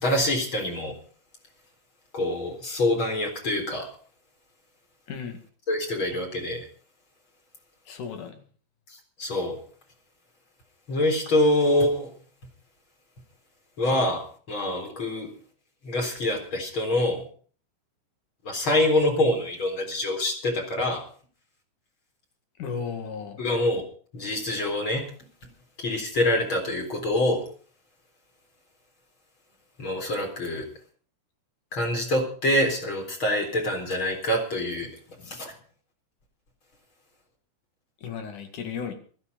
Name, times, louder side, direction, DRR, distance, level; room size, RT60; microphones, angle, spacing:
voice 1, 0.0-0.9 2.1-3.9 5.7-6.7 9.2-9.6 10.9-12.1 13.8-14.2 14.5-15.3 15.8-17.2 18.4-21.0 23.4-23.8 24.1-25.0 25.8-27.4 29.8-30.7 31.7-34.9 35.3-35.5, left 1 dB, 40° left, 2 dB, 4.6 m, -25 dB
voice 2, 5.1-5.4 7.9-8.4 22.6-23.4 35.2-35.3 38.0-38.9, left 6 dB, 70° left, 6 dB, 3.5 m, -35 dB
16.0 x 14.0 x 5.2 m, 0.43 s
omnidirectional pair, 3.6 m